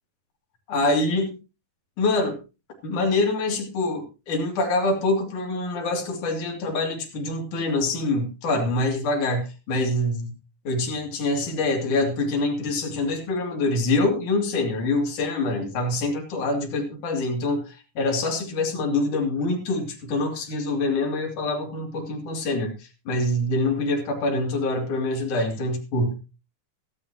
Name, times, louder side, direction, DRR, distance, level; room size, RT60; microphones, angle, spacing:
voice 1, 0.7-1.3 2.0-2.4 2.8-10.3 10.7-26.1, left 2 dB, 65° left, 1 dB, 4.1 m, -25 dB
17.0 x 14.0 x 2.9 m, 0.29 s
omnidirectional pair, 3.8 m